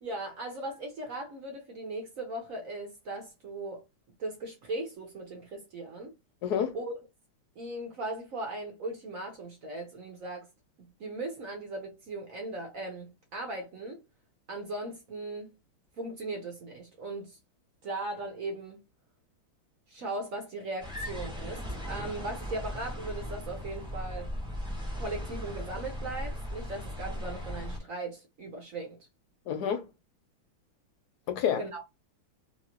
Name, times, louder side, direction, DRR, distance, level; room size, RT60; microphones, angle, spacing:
voice 1, 0.0-3.8 4.2-6.1 6.7-6.9 7.6-10.5 11.0-14.0 14.5-15.5 16.0-17.4 17.8-18.8 19.9-24.3 25.0-29.1 31.6-31.8, right 2 dB, 60° right, 0.9 m, -38 dB
voice 2, 6.4-6.8 29.5-29.9 31.3-31.8, left 8 dB, 70° left, 1.0 m, -29 dB
sound 1, 20.8-27.8, equal, 5° right, 0.7 m, -37 dB
2.9 x 2.9 x 2.9 m
omnidirectional pair, 2.3 m